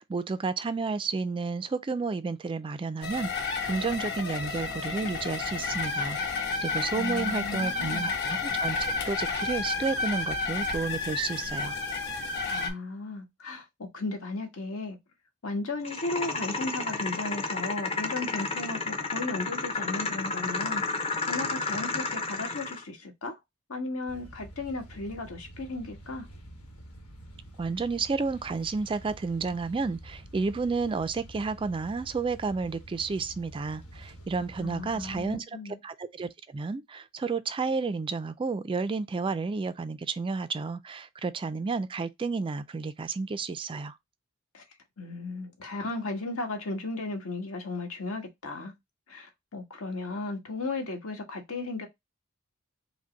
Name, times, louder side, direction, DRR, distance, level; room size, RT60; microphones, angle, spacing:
voice 1, 0.0-8.8 9.0-11.7 27.6-35.5 35.8-44.0, right 4 dB, 25° right, 0.3 m, -31 dB
sound 1, 3.0-12.7, left 4 dB, 50° left, 1.4 m, -31 dB
voice 2, 7.0-8.1 12.5-15.0 15.4-23.4 23.7-26.3 34.6-35.8 44.5-44.6 45.0-48.7 49.1-51.9, left 3 dB, 70° left, 1.4 m, -35 dB
sound 2, 15.8-22.8, left 3 dB, 30° left, 0.7 m, -32 dB
sound 3, 24.1-35.3, right 1 dB, 85° left, 1.3 m, -48 dB
5.0 x 2.1 x 3.9 m
head